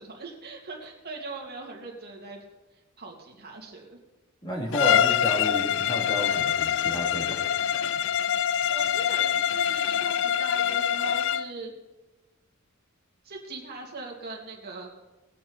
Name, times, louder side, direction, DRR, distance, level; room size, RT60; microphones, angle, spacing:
voice 1, 0.0-2.4 3.0-4.0 8.7-11.7 13.2-14.9, right 3 dB, 50° right, -1 dB, 2.6 m, -40 dB
voice 2, 4.4-7.4, equal, 20° left, -2 dB, 3.1 m, -31 dB
Bowed string instrument, 4.7-11.5, left 9 dB, 60° left, 0.3 m, -25 dB
20.5 x 8.5 x 4.5 m, 1.1 s
head